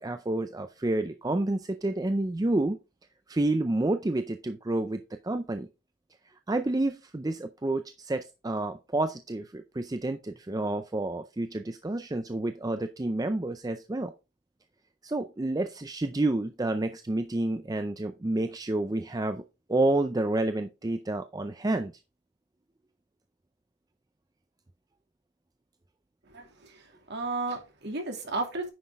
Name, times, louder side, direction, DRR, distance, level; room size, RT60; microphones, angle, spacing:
voice 1, 0.0-2.8 3.3-5.7 6.5-14.1 15.0-19.4 19.7-21.9, right 2 dB, 15° right, 8 dB, 0.4 m, -29 dB
voice 2, 26.3-28.7, right 3 dB, 50° right, 3 dB, 2.5 m, -34 dB
9.4 x 5.9 x 3.5 m, 0.27 s
head